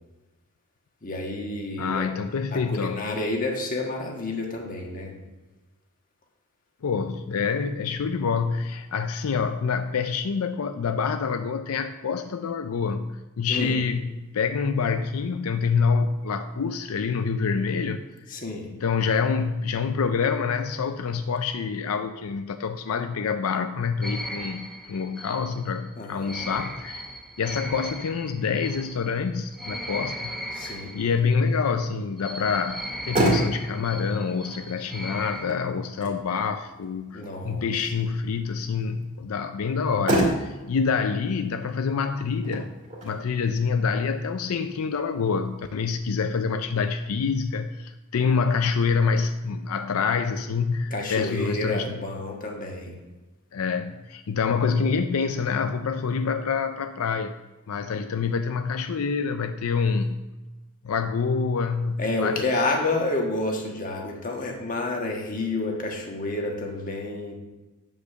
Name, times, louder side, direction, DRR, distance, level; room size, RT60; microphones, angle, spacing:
voice 1, 1.0-2.1 2.5-5.1 13.5-13.8 18.3-18.7 26.0-26.4 30.5-30.9 37.1-37.9 50.9-52.9 62.0-67.3, left 2 dB, 40° left, 0 dB, 1.5 m, -29 dB
voice 2, 1.8-3.0 6.8-18.0 18.7-27.1 27.4-30.3 30.6-42.7 43.0-52.0 53.5-57.4 57.7-60.2 60.8-62.5, left 5 dB, 85° left, 8 dB, 0.5 m, -26 dB
sound 1, 24.0-31.6 32.2-35.4, equal, ahead, 0.9 m, -37 dB
Motor vehicle (road), 32.8-45.7, right 1 dB, 35° right, 1.9 m, -32 dB
8.4 x 5.4 x 6.5 m, 1.1 s
head